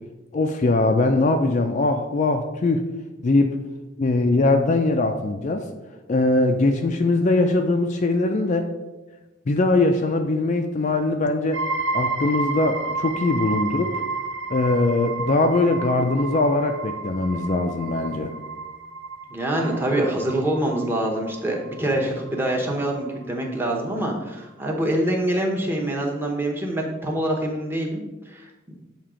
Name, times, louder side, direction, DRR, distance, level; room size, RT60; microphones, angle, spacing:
voice 1, 0.3-2.9 3.2-3.6 4.0-5.7 6.1-8.7 9.5-11.6 11.9-13.9 14.5-18.3, left 2 dB, 35° left, 5 dB, 0.3 m, -21 dB
sound 1, 11.5-23.0, right 3 dB, 80° right, 1.2 m, -31 dB
voice 2, 19.3-28.0 28.3-28.4 28.7-28.8, right 1 dB, 10° right, -1 dB, 0.8 m, -25 dB
7.3 x 2.9 x 4.9 m, 1.1 s
head